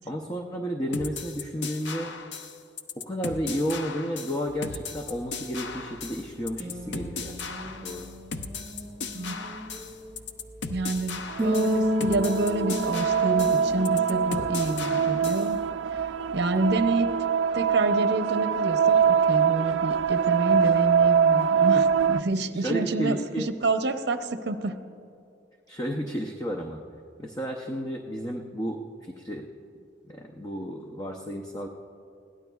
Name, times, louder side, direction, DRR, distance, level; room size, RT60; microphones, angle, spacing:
voice 1, 0.0-2.1 3.0-7.4 7.8-8.1 22.6-23.5 25.7-26.8 27.2-29.5 30.1-31.7, equal, 20° left, 2 dB, 0.6 m, -32 dB
sound 1, 0.9-15.5, left 4 dB, 70° left, 0.6 m, -37 dB
sound 2, 4.5-17.0, equal, 15° right, 3.8 m, -34 dB
voice 2, 10.7-15.6 16.3-17.1 17.5-24.8, right 2 dB, 60° right, 8 dB, 0.7 m, -28 dB
sound 3, 11.3-22.2, right 7 dB, 90° right, 0.3 m, -24 dB
21.5 x 17.0 x 2.4 m, 2.6 s
head